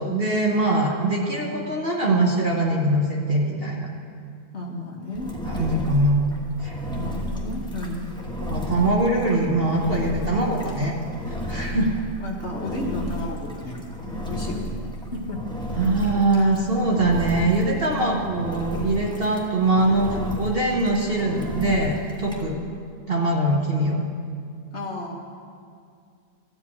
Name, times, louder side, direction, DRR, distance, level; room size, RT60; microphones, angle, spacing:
voice 1, 0.0-3.9 5.5-6.2 6.6-6.7 8.4-10.9 11.3-11.9 15.8-22.6 23.1-24.0, right 2 dB, 40° right, -2 dB, 1.1 m, -22 dB
voice 2, 4.5-5.4 7.0-8.3 12.2-14.8 15.1-15.4 24.7-25.2, left 1 dB, 45° left, 0 dB, 1.2 m, -33 dB
Engine, 5.1-22.4, equal, 5° left, 1.0 m, -33 dB
13.5 x 5.2 x 8.4 m, 2.3 s
omnidirectional pair, 1.8 m